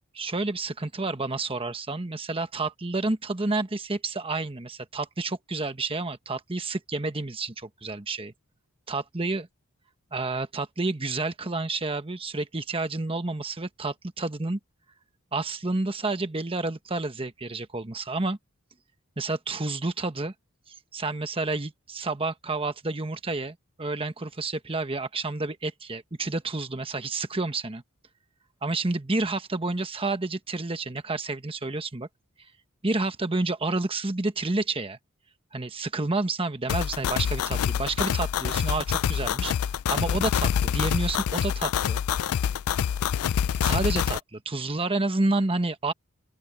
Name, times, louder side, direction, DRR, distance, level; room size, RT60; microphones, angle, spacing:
voice 1, 0.2-8.3 8.9-9.5 10.1-14.6 15.3-18.4 19.2-20.3 20.7-27.8 28.6-32.1 32.8-35.0 35.5-39.5 39.9-42.0 43.6-45.9, right 3 dB, 25° right, 1.2 m, -29 dB
sound 1, 36.7-44.2, left 8 dB, 80° left, 0.4 m, -26 dB
open air
head